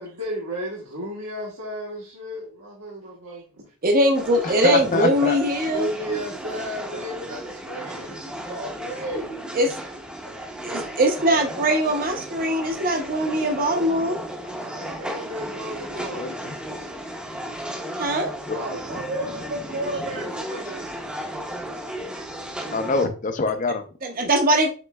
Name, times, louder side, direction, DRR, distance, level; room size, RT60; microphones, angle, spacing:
voice 1, 0.0-3.7 5.0-5.1 5.7-9.3 14.4-16.3 18.5-20.9, right 1 dB, 85° right, 1.2 m, -33 dB
voice 2, 3.8-5.9 9.5-9.8 10.6-14.2 18.0-18.3 24.0-24.7, right 1 dB, 45° right, 0.7 m, -21 dB
sound 1, 4.1-23.1, right 1 dB, 5° right, 0.6 m, -35 dB
voice 3, 4.4-5.4 10.3-10.5 16.2-16.6 18.5-18.6 19.2-19.3 22.7-23.8, left 3 dB, 40° left, 0.5 m, -25 dB
7.3 x 3.1 x 2.3 m
head